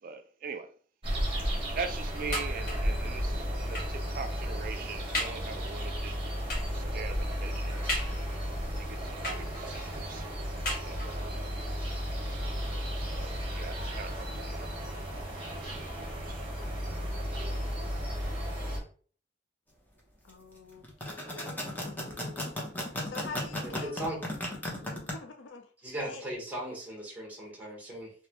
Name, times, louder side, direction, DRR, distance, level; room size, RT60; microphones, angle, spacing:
voice 1, 0.0-0.7 1.7-6.2 6.7-7.8 8.8-10.4 10.8-11.5 12.6-14.7 16.0-16.5, right 5 dB, 50° right, 0.4 m, -42 dB
sound 1, 1.0-18.8, equal, 30° right, 1.0 m, -34 dB
sound 2, 2.3-3.0 3.7-4.1 4.6-4.7 5.1-5.5 6.5-6.8 7.9-8.5 9.2-9.8 10.6-11.3 12.1-12.2 12.6-12.7, left 1 dB, 50° left, 0.8 m, -36 dB
voice 2, 20.2-22.6 23.1-24.2 24.8-26.2, left 3 dB, 75° left, 0.4 m, -47 dB
sound 3, 20.8-25.1, left 1 dB, 10° left, 0.6 m, -35 dB
voice 3, 23.8-24.2 25.8-28.1, right 1 dB, 10° right, 1.1 m, -37 dB
3.0 x 2.1 x 2.9 m
head